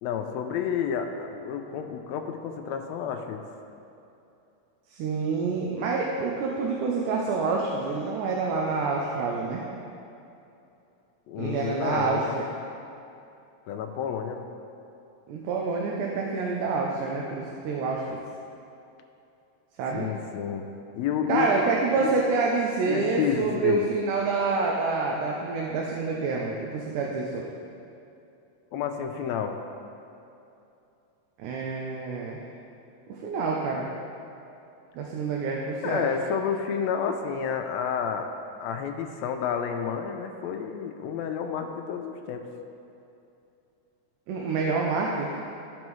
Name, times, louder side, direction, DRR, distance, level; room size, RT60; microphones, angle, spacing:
voice 1, 0.0-3.4 11.3-12.4 13.7-14.5 19.9-20.7 20.9-22.1 22.8-23.9 28.7-29.6 35.8-38.3 38.6-42.5, left 7 dB, 80° left, 5 dB, 1.7 m, -30 dB
voice 2, 4.9-9.6 11.4-12.5 15.3-18.2 19.8-20.1 21.3-27.5 31.4-32.4 33.1-33.9 35.0-36.1 44.3-45.3, right 4 dB, 90° right, -2 dB, 2.2 m, -27 dB
14.0 x 5.3 x 3.1 m, 2.8 s
omnidirectional pair, 3.4 m